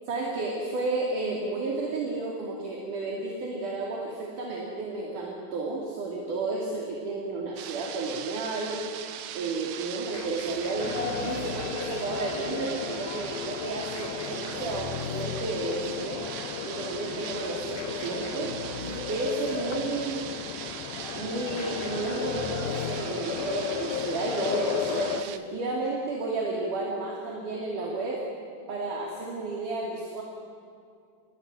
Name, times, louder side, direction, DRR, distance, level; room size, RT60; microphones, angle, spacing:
voice 1, 0.1-9.0 9.3-16.2 16.6-18.5 19.1-20.3 21.1-28.2 28.7-30.2, right 3 dB, 60° right, -1 dB, 4.3 m, -32 dB
sound 1, 7.6-25.4, right 10 dB, 85° right, 3.1 m, -40 dB
sound 2, 10.1-11.9 14.0-15.6 17.8-19.3 21.6-23.2, left 4 dB, 60° left, 3.4 m, -39 dB
sound 3, 10.8-25.2, left 10 dB, 80° left, 2.8 m, -35 dB
27.5 x 22.0 x 9.7 m, 2.3 s
omnidirectional pair, 4.2 m